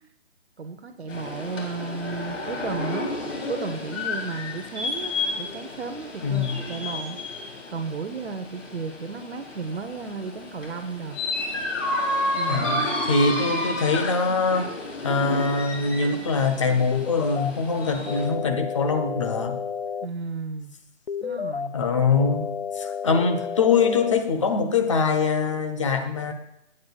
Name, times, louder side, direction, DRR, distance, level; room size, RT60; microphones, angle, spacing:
voice 1, 0.6-3.1 3.5-11.2 12.3-13.0 20.0-20.7 21.2-21.7, right 4 dB, 60° right, 7 dB, 0.9 m, -34 dB
sound 1, 1.1-18.3, left 2 dB, 85° left, 3.4 m, -31 dB
voice 2, 6.2-6.6 12.5-14.7 15.0-19.6 21.7-22.5 22.7-26.3, left 4 dB, 25° left, 7 dB, 0.8 m, -23 dB
sound 2, 16.9-17.5 18.1-20.1 21.1-21.7 22.2-24.2, left 6 dB, 50° left, 0.4 m, -31 dB
19.0 x 8.8 x 2.4 m, 0.81 s
hypercardioid pair, 165°, 37 cm